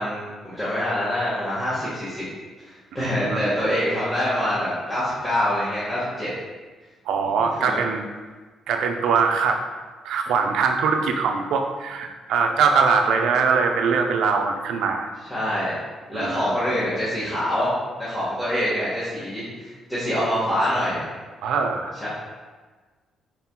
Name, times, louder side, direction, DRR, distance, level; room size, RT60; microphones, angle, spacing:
voice 1, 0.0-2.2 2.6-6.3 7.6-7.8 15.3-15.7 16.1-17.7 18.0-21.0 22.0-22.1, equal, 10° left, -11 dB, 1.3 m, -25 dB
voice 2, 3.0-3.5 7.1-8.1 8.7-9.6 10.0-15.1 16.1-16.5 21.4-22.0, right 5 dB, 85° right, 4 dB, 0.4 m, -22 dB
4.3 x 4.2 x 2.2 m, 1.4 s
cardioid pair, 90°, 0 cm